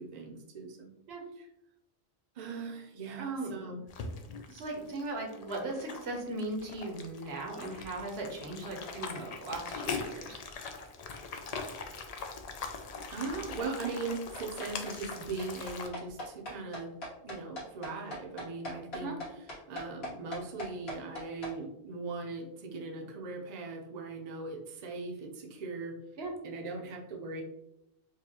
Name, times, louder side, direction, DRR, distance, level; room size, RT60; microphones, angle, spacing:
voice 1, 0.0-0.9 1.4-1.5 2.3-3.8 13.1-16.9 17.2-19.1 19.7-25.9 26.4-27.4, right 3 dB, 45° right, 0 dB, 0.6 m, -39 dB
voice 2, 3.2-3.5 4.5-10.4 19.0-19.2 26.2-26.4, right 2 dB, 80° right, 1 dB, 1.1 m, -38 dB
sound 1, 3.9-15.9, left 4 dB, 55° left, 0.4 m, -41 dB
sound 2, 13.6-21.5, left 1 dB, 75° left, 1.6 m, -41 dB
4.8 x 2.3 x 2.8 m, 0.83 s
omnidirectional pair, 1.1 m